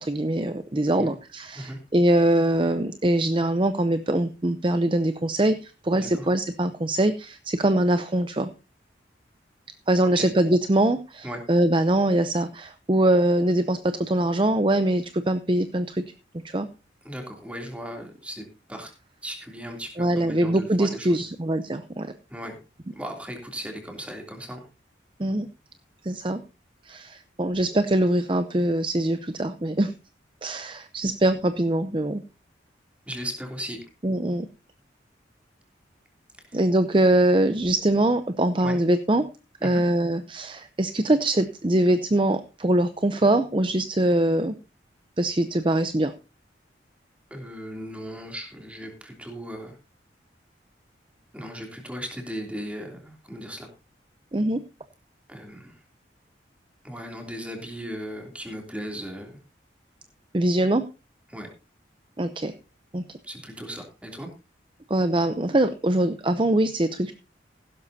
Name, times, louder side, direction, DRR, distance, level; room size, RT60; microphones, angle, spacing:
voice 1, 0.0-8.5 9.9-16.0 16.4-16.7 20.0-22.1 25.2-25.5 26.0-26.4 26.8-29.9 30.4-32.2 34.0-34.5 36.5-39.3 39.6-44.5 45.2-46.1 54.3-54.6 60.3-60.8 62.2-62.5 62.9-63.0 64.9-67.1, right 1 dB, 25° right, 10 dB, 0.6 m, -23 dB
voice 2, 5.9-6.3 10.1-10.3 11.2-11.4 17.0-18.9 19.2-21.2 22.3-22.6 22.9-24.7 33.1-33.8 36.5-36.6 38.6-38.8 39.6-39.8 47.3-49.8 51.3-53.7 55.3-55.8 56.8-59.4 61.3-61.5 63.2-64.3, equal, 5° right, 2 dB, 3.0 m, -37 dB
16.0 x 12.0 x 2.8 m, 0.29 s
head